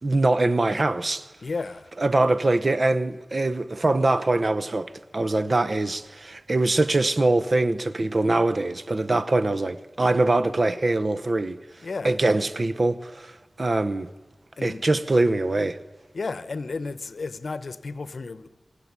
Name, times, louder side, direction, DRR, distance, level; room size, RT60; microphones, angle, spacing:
voice 1, 0.0-1.2 2.0-11.6 12.0-14.1 14.6-15.8, right 2 dB, 50° right, 0.8 m, -23 dB
voice 2, 1.4-1.9 11.8-12.2 14.6-14.8 16.1-18.5, left 4 dB, 75° left, 0.9 m, -33 dB
27.5 x 16.5 x 9.6 m
wide cardioid pair, 75°, 0 cm